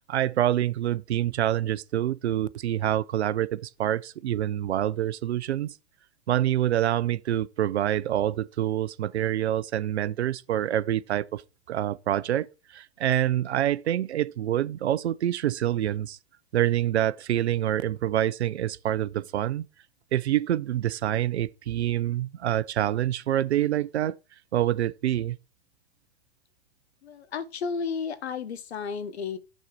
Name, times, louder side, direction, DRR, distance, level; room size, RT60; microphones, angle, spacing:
voice 1, 0.1-5.7 6.3-11.4 11.7-16.2 16.5-19.6 20.1-24.1 24.5-25.4, right 12 dB, 85° right, 0.7 m, -26 dB
voice 2, 27.0-29.4, left 5 dB, 80° left, 1.4 m, -32 dB
6.4 x 4.1 x 5.0 m
hypercardioid pair, 120°, 32 cm